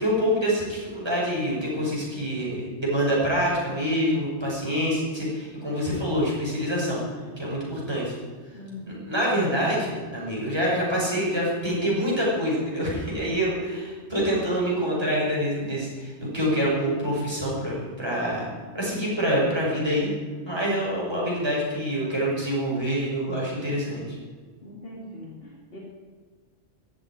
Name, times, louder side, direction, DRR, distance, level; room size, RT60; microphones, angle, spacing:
voice 1, 0.0-7.0 7.4-8.2 8.9-18.5 18.7-20.1 20.5-24.1, equal, 20° right, -6 dB, 6.3 m, -26 dB
voice 2, 8.5-9.0 13.7-13.8 18.4-18.7 24.6-25.8, left 2 dB, 55° left, -4 dB, 2.8 m, -42 dB
15.0 x 8.7 x 9.7 m, 1.5 s
omnidirectional pair, 1.2 m